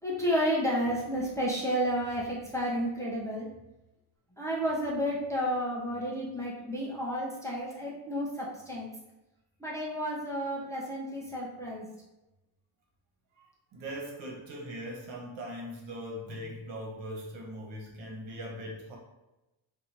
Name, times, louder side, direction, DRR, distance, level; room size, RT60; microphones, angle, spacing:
voice 1, 0.0-3.5 4.4-8.9 9.6-11.9, equal, 5° left, -5 dB, 0.5 m, -31 dB
voice 2, 13.7-19.0, equal, 75° right, -1 dB, 1.4 m, -40 dB
3.7 x 2.7 x 4.5 m, 0.98 s
cardioid pair, 160°, 46 cm